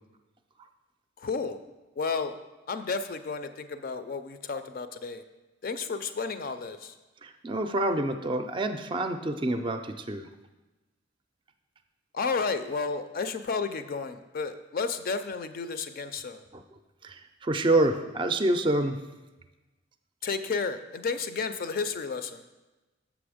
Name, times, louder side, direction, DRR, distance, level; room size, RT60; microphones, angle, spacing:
voice 1, 1.2-1.6 2.0-2.3 2.7-5.2 5.6-6.9 12.1-16.4 20.2-22.4, left 4 dB, 50° left, 10 dB, 0.4 m, -32 dB
voice 2, 7.2-10.3 16.5-16.6 17.0-19.0, right 1 dB, 25° right, 8 dB, 0.4 m, -27 dB
7.5 x 6.1 x 5.0 m, 1.1 s
head